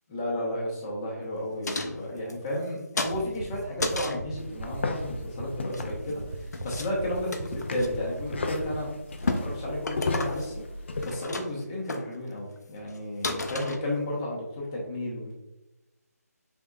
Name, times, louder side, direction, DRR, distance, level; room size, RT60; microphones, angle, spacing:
voice 1, 0.1-8.9 9.2-10.6 11.0-15.3, left 1 dB, 15° left, -3 dB, 0.8 m, -33 dB
sound 1, 1.6-2.7 3.0-4.3 5.5-6.2 6.5-6.9 7.2-7.9 8.4-8.7 9.1-9.4 9.8-10.7 10.9-11.6 11.9-12.0 12.6-12.7 12.9-13.0 13.2-14.2, left 2 dB, 85° left, 0.6 m, -34 dB
sound 2, 3.0-9.0, right 2 dB, 30° right, 0.4 m, -36 dB
sound 3, 4.4-11.1, left 3 dB, 45° left, 0.4 m, -34 dB
5.1 x 3.5 x 2.4 m, 0.96 s
figure-of-eight pair, 165°, 9 cm